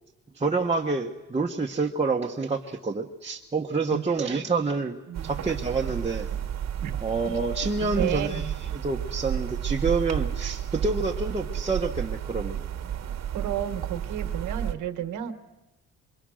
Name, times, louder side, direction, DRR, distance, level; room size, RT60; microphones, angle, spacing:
voice 1, 0.3-5.0 5.2-6.3 7.0-12.6, right 4 dB, 20° right, -1 dB, 1.2 m, -28 dB
sound 1, 5.1-14.7, right 10 dB, 60° right, 1.4 m, -32 dB
voice 2, 7.8-8.4 13.3-15.3, right 10 dB, 80° right, 8 dB, 1.6 m, -32 dB
26.0 x 23.5 x 6.4 m, 1.0 s
cardioid pair, 90°, 30 cm